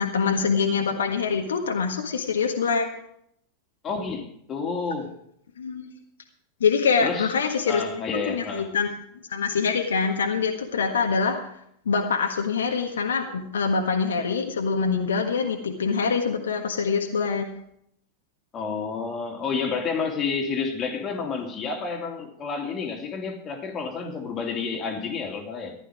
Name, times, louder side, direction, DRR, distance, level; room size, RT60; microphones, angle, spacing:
voice 1, 0.0-2.9 5.6-5.9 6.6-7.8 8.3-8.9 9.3-11.4 11.8-17.5, left 5 dB, 65° left, 1.5 m, -24 dB
voice 2, 3.8-5.1 7.0-7.3 7.7-8.7 18.5-25.8, left 5 dB, 25° left, 2.8 m, -30 dB
15.0 x 11.5 x 4.9 m
figure-of-eight pair, 90°, 0 cm